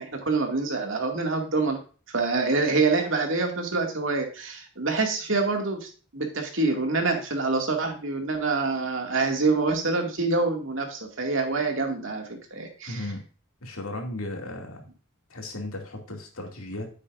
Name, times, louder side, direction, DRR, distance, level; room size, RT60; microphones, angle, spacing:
voice 1, 0.0-1.8 2.1-13.1, right 3 dB, 65° right, 3 dB, 2.2 m, -26 dB
voice 2, 12.9-13.2 13.6-14.9 15.3-16.9, left 1 dB, 90° left, 2 dB, 2.5 m, -35 dB
10.0 x 8.3 x 2.6 m, 0.37 s
head